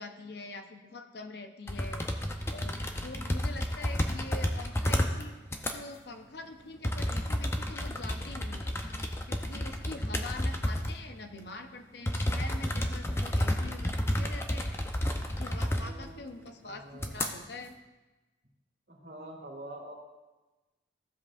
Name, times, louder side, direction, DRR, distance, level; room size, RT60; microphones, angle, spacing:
voice 1, 0.0-2.0 2.5-5.3 5.7-8.8 9.3-14.7 15.4-17.7, left 2 dB, 60° left, 6 dB, 0.7 m, -44 dB
sound 1, 1.7-5.2 5.5-5.8 6.8-11.0 11.4-11.5 12.1-16.1 16.5-16.6 17.0-17.3, left 1 dB, 15° left, 0.5 m, -31 dB
voice 2, 15.6-16.3 16.6-17.1 18.9-19.9, right 1 dB, 65° right, 0 dB, 1.9 m, -46 dB
14.5 x 7.6 x 2.4 m, 1.1 s
head